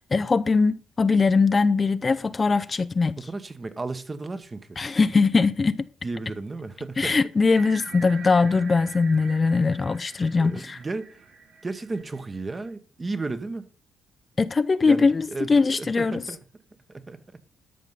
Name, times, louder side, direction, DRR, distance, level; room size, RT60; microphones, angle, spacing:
voice 1, 0.0-3.2 4.8-5.9 7.0-10.8 14.4-16.2, left 4 dB, 30° left, 0.4 m, -21 dB
voice 2, 3.2-4.8 6.0-7.2 10.4-11.2 11.6-13.6 14.8-16.4 16.9-17.2, right 3 dB, 25° right, 1.1 m, -34 dB
sound 1, 7.5-12.7, right 5 dB, 75° right, 2.8 m, -44 dB
13.0 x 5.5 x 5.5 m
cardioid pair, 90°, 0 cm